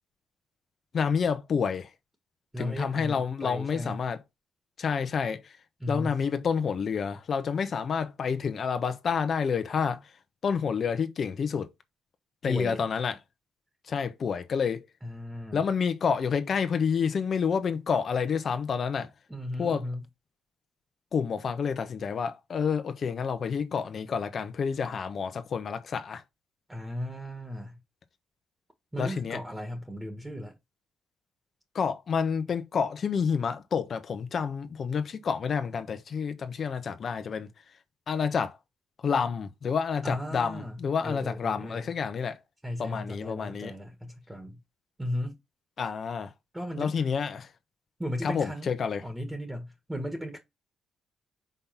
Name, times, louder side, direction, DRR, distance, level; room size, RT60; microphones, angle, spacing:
voice 1, 0.9-1.9 2.6-4.2 4.8-5.5 5.9-10.0 10.4-11.7 12.4-13.2 13.9-14.8 15.5-19.1 19.6-19.9 21.1-26.2 29.0-29.4 31.7-37.5 38.1-38.6 39.0-42.4 42.8-43.7 45.8-46.3 46.8-47.5 48.2-49.0, left 6 dB, 50° left, 1.2 m, -29 dB
voice 2, 2.5-4.0 5.8-6.2 12.5-12.8 15.0-15.6 19.3-20.0 26.7-27.8 28.9-30.5 40.0-41.9 42.6-44.6 45.0-45.4 46.5-46.9 48.0-48.7 49.0-50.4, equal, 10° right, 1.7 m, -36 dB
5.3 x 4.0 x 5.9 m
cardioid pair, 90°, 0 cm